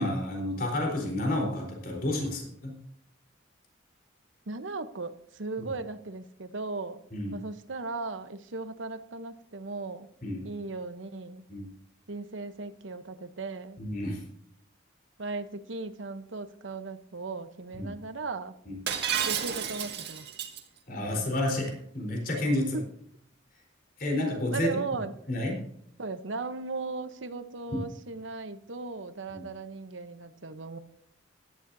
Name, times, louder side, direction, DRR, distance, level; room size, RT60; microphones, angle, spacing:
voice 1, 0.0-2.7 5.6-5.7 7.1-7.4 10.2-10.4 11.5-11.7 13.8-14.2 17.7-17.9 18.7-18.8 20.9-22.8 24.0-24.7 25.3-25.5 29.3-29.4, left 1 dB, 50° left, 0 dB, 4.0 m, -30 dB
voice 2, 4.5-7.0 7.3-10.1 10.4-11.4 12.1-13.8 15.2-18.5 19.3-20.2 22.7-22.8 24.5-25.2 26.0-30.8, right 3 dB, 75° right, 10 dB, 0.9 m, -37 dB
Shatter, 18.9-20.6, right 8 dB, 55° right, 1.9 m, -31 dB
16.0 x 12.5 x 2.7 m, 0.71 s
head